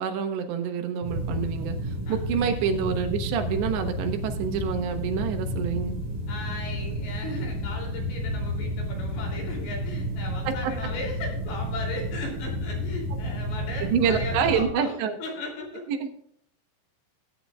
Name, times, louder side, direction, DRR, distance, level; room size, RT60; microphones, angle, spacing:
voice 1, 0.0-1.8 2.1-6.0 10.5-10.6 13.8-15.1 15.9-16.0, right 7 dB, 80° right, 6 dB, 3.4 m, -27 dB
sound 1, 1.0-14.7, equal, 35° right, 4.5 m, -31 dB
voice 2, 6.3-15.9, left 2 dB, 65° left, 0 dB, 4.8 m, -37 dB
19.5 x 9.8 x 2.4 m, 0.69 s
omnidirectional pair, 5.0 m